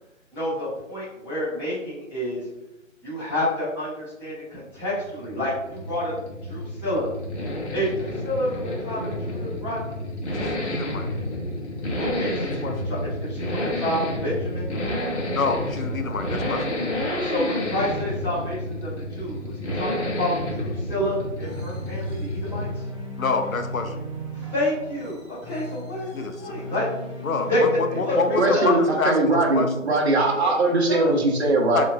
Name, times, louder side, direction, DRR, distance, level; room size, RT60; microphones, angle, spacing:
voice 1, 0.3-2.4 3.0-6.1 6.5-7.1 7.7-10.0 12.0-14.7 17.2-22.7 24.3-26.1 26.4-26.8 27.4-27.6 27.9-28.8 30.2-31.1, left 1 dB, 5° left, -14 dB, 1.1 m, -29 dB
Accelerating revving vroom, 4.8-22.9 23.2-23.3, left 1 dB, 60° left, 1.1 m, -30 dB
voice 2, 10.3-11.1 12.4-12.7 15.3-16.7 23.2-23.9 26.1-26.6 27.2-29.7 31.7-31.8, left 4 dB, 90° left, 6 dB, 0.7 m, -27 dB
sound 1, 21.4-29.1, equal, 20° right, 0.5 m, -37 dB
voice 3, 28.4-31.8, right 2 dB, 50° right, -1 dB, 1.0 m, -21 dB
4.9 x 3.0 x 2.2 m, 0.91 s
figure-of-eight pair, 150°, 40 cm